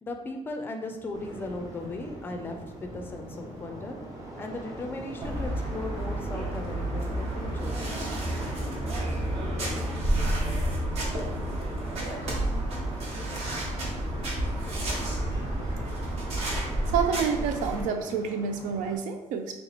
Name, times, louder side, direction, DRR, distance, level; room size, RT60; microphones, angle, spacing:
voice 1, 0.0-4.0 4.4-7.8, left 2 dB, 15° left, 4 dB, 0.4 m, -37 dB
sound 1, 1.1-19.0, right 1 dB, 25° right, 0.8 m, -43 dB
sound 2, 5.2-17.8, right 1 dB, 55° right, 1.0 m, -30 dB
voice 2, 16.9-19.6, right 6 dB, 80° right, 6 dB, 0.4 m, -28 dB
3.4 x 2.9 x 4.0 m, 1.0 s
cardioid pair, 175°, 13 cm